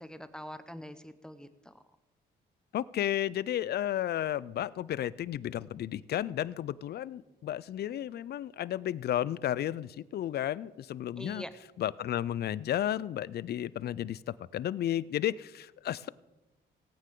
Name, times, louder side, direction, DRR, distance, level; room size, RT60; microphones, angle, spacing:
voice 1, 0.0-1.7 11.2-11.5, equal, 5° left, 11 dB, 0.8 m, -44 dB
voice 2, 2.7-11.4 11.8-16.1, left 11 dB, 55° left, 20 dB, 0.4 m, -33 dB
17.5 x 9.1 x 3.8 m, 1.1 s
cardioid pair, 90°, 20 cm